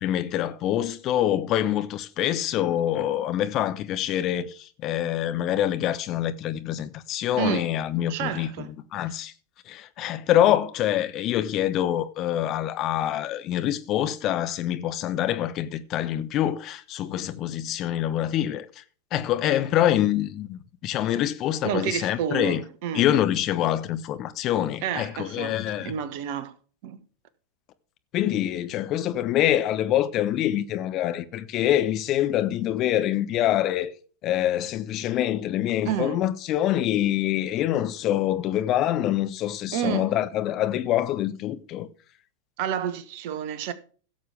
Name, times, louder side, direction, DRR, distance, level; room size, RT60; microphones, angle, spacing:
voice 1, 0.0-9.3 9.7-18.7 19.1-22.6 22.9-25.9 28.1-33.9 34.2-41.9, left 12 dB, 35° left, 1.0 m, -25 dB
voice 2, 7.4-7.7 8.1-8.7 21.6-23.1 24.8-26.5 26.8-27.0 35.8-36.2 39.7-40.1 42.6-43.7, right 9 dB, 45° right, 1.2 m, -30 dB
17.0 x 7.2 x 3.4 m
figure-of-eight pair, 90°, 0 cm